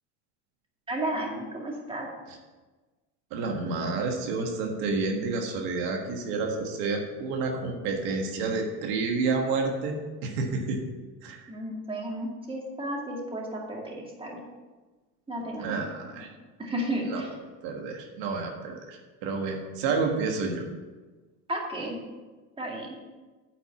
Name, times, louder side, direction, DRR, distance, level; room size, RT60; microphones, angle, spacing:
voice 1, 0.9-2.1 11.5-14.4 15.3-16.2 16.6-17.3 21.5-22.0 22.6-23.0, right 1 dB, 15° right, -1 dB, 2.1 m, -33 dB
voice 2, 3.3-10.8 11.2-11.5 15.6-16.3 17.1-17.2 17.6-20.6, right 4 dB, 85° right, 2 dB, 1.5 m, -30 dB
9.0 x 4.4 x 7.4 m, 1.3 s
cardioid pair, 110°, 34 cm